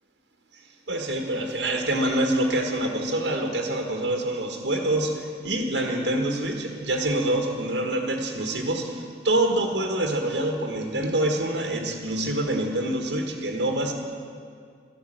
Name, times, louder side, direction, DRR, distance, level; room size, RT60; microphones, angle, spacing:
voice 1, 0.9-13.9, right 1 dB, 85° right, 3 dB, 1.6 m, -26 dB
13.5 x 12.5 x 7.7 m, 2.2 s
head